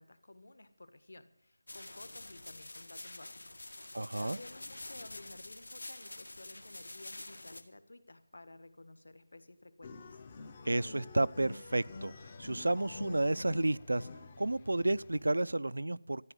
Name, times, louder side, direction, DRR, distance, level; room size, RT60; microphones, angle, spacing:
voice 1, 0.0-10.2, left 2 dB, 60° left, 1.6 m, -54 dB
sound 1, 1.7-7.6, left 2 dB, 75° left, 1.9 m, -47 dB
voice 2, 3.9-4.4 10.6-12.1 12.4-14.1 14.4-16.3, right 2 dB, 80° right, 0.5 m, -31 dB
sound 2, 9.8-15.2, left 3 dB, 15° left, 0.7 m, -47 dB
14.0 x 10.0 x 8.0 m
figure-of-eight pair, 180°, 0 cm